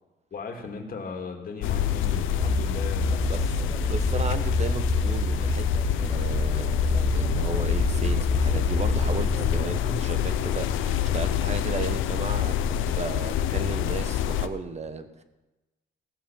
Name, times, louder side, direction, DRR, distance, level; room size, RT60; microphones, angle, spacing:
voice 1, 0.3-3.5, left 4 dB, 45° left, 2 dB, 2.6 m, -38 dB
sound 1, 1.6-14.5, left 10 dB, 90° left, 0.7 m, -26 dB
sound 2, 2.4-10.0, equal, 5° right, 1.3 m, -28 dB
voice 2, 3.3-3.6 3.9-15.2, right 4 dB, 35° right, 10 dB, 1.3 m, -35 dB
16.0 x 7.2 x 7.2 m, 1.1 s
cardioid pair, 90°, 20 cm